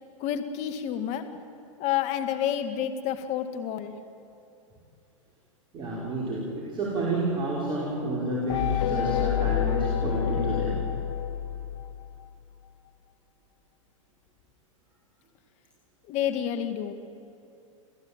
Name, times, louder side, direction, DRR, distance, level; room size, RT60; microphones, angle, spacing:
voice 1, 0.2-1.3 1.8-3.9 16.1-16.9, left 10 dB, 40° left, 8 dB, 2.1 m, -29 dB
voice 2, 5.7-10.8, right 1 dB, 30° right, -5 dB, 5.6 m, -30 dB
sound 1, 8.5-12.2, left 10 dB, 60° left, 1.6 m, -28 dB
28.5 x 15.0 x 9.0 m, 2.6 s
hypercardioid pair, 115°, 17 cm